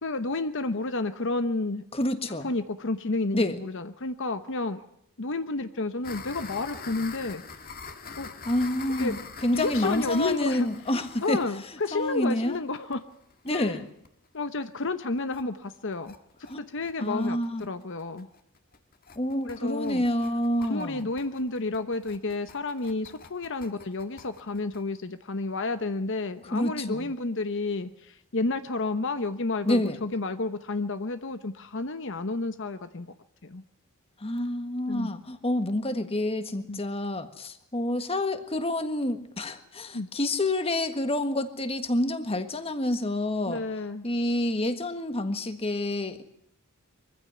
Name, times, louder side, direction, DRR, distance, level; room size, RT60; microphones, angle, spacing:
voice 1, 0.0-1.8 2.4-4.8 5.2-7.4 8.2-8.3 8.9-9.2 9.5-10.7 11.2-13.0 13.5-13.8 14.3-16.2 16.6-18.3 19.4-20.0 20.6-33.1 33.4-33.6 34.9-35.1 36.7-36.8 39.9-40.1 43.5-44.0, left 3 dB, 60° left, 10 dB, 1.0 m, -31 dB
voice 2, 1.9-2.5 3.3-3.6 8.4-11.4 11.9-12.6 13.4-13.9 16.5-16.6 17.0-17.6 19.1-21.1 26.5-27.1 29.6-30.0 34.2-43.6 44.0-46.2, left 1 dB, 25° left, 9 dB, 1.6 m, -28 dB
sound 1, 6.0-13.7 14.1-14.2 14.4-14.5 14.8-14.9 15.2-15.4 15.7-24.8, left 5 dB, 45° left, 1.8 m, -44 dB
24.0 x 15.5 x 9.8 m, 0.74 s
head